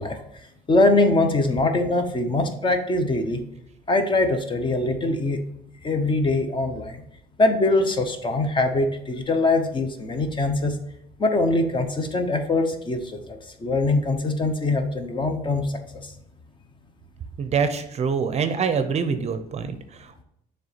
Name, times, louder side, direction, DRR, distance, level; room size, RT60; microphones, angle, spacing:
voice 1, 0.0-3.4 3.9-5.4 5.8-7.0 7.4-10.8 11.2-16.1, left 2 dB, 30° left, 7 dB, 0.8 m, -23 dB
voice 2, 17.4-20.2, right 6 dB, 40° right, 9 dB, 0.6 m, -25 dB
6.8 x 3.4 x 4.1 m, 0.81 s
cardioid pair, 110°, 17 cm